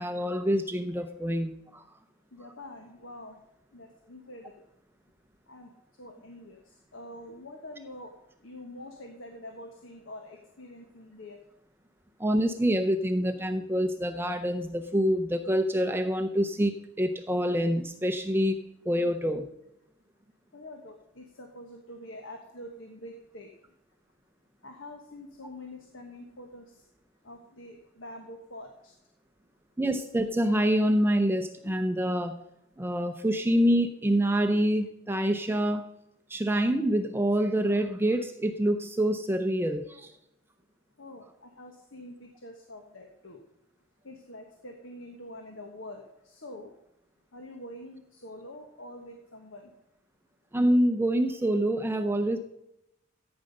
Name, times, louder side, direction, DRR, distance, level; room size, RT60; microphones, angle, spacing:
voice 1, 0.0-1.8 12.2-19.5 29.8-32.4 32.8-35.9 36.3-40.1 50.5-52.4, equal, 10° right, 7 dB, 0.6 m, -26 dB
voice 2, 2.3-3.4 3.7-4.7 5.5-5.7 6.0-6.6 6.9-8.1 8.4-11.4 20.5-23.5 24.6-26.7 27.2-28.9 41.0-43.4 44.0-46.7 47.3-49.7, left 1 dB, 70° left, 3 dB, 1.4 m, -45 dB
14.5 x 8.8 x 5.4 m, 0.83 s
head